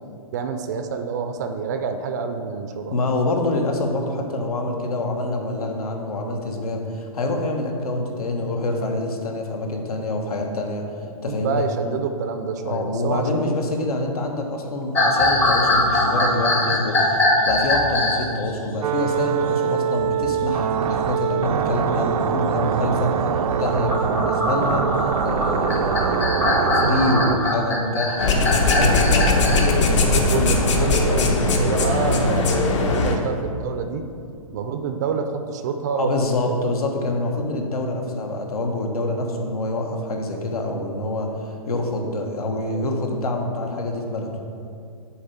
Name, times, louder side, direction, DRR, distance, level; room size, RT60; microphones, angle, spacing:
voice 1, 0.3-2.9 11.3-13.3 29.4-34.0 34.5-36.1 36.4-36.6 37.1-37.2, right 5 dB, 30° right, 7 dB, 0.4 m, -27 dB
voice 2, 2.9-10.8 11.2-11.7 12.6-23.2 23.6-29.6 36.0-44.3, left 2 dB, 85° left, 3 dB, 1.4 m, -26 dB
sound 1, 14.9-18.3 19.7-20.3 20.7-20.8 21.5-21.8 23.5-29.7, left 2 dB, 10° left, 0.6 m, -22 dB
sound 2, 18.8-27.4, right 7 dB, 90° right, 0.5 m, -23 dB
sound 3, 28.2-33.2, left 2 dB, 55° left, 1.0 m, -19 dB
7.2 x 4.7 x 7.0 m, 2.4 s
hypercardioid pair, 165°, 19 cm